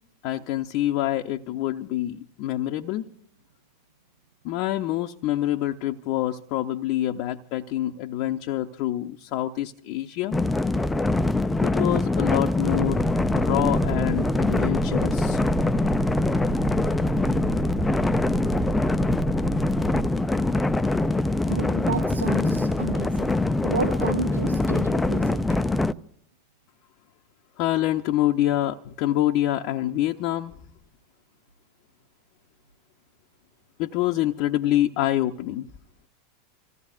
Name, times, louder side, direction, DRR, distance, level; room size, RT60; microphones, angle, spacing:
voice 1, 0.2-3.1 4.4-10.4 11.6-13.0 13.3-15.4 27.6-30.5 33.8-35.7, left 13 dB, 50° left, 0.7 m, -26 dB
sound 1, 10.3-25.9, left 2 dB, 10° left, 0.5 m, -23 dB
sound 2, 12.6-20.1, right 9 dB, 40° right, 0.6 m, -33 dB
voice 2, 21.5-25.6, right 4 dB, 85° right, 0.5 m, -32 dB
27.5 x 16.0 x 2.5 m
figure-of-eight pair, 85°, 0 cm